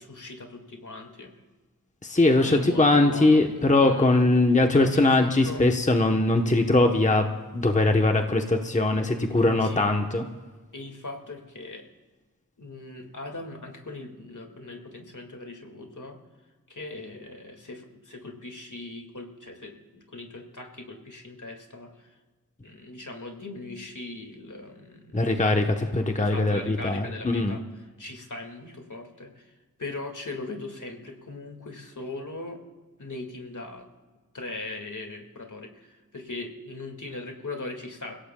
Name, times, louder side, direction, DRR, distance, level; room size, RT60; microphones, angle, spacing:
voice 1, 0.0-1.3 2.4-4.1 4.7-5.6 9.3-9.8 10.7-11.8 12.6-16.2 16.7-22.1 22.6-25.4 26.2-27.6 28.0-29.5 29.8-32.6 33.0-33.9 34.3-38.2, left 2 dB, 60° left, 4 dB, 2.0 m, -39 dB
voice 2, 2.0-7.3 7.5-10.2 25.1-27.6, left 2 dB, 20° left, 4 dB, 1.0 m, -21 dB
29.5 x 16.5 x 2.3 m, 1.3 s
wide cardioid pair, 65°, 34 cm